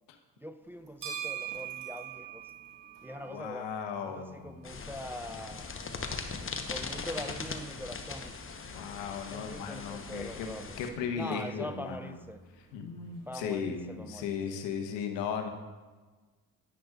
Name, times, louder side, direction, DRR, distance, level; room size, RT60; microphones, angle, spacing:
voice 1, 0.4-2.4 3.0-3.7 4.1-5.6 6.7-8.3 9.3-10.8 11.1-12.4 13.3-14.4, equal, 5° right, 9 dB, 0.4 m, -42 dB
sound 1, 0.6-14.5, right 10 dB, 70° right, 1.9 m, -48 dB
voice 2, 3.2-4.7 8.7-10.5 10.8-12.2 12.7-15.5, left 6 dB, 80° left, 5 dB, 1.1 m, -36 dB
sound 2, 4.6-10.9, left 4 dB, 30° left, 1.0 m, -40 dB
10.5 x 9.5 x 2.5 m, 1.3 s
hypercardioid pair, 50°, 43 cm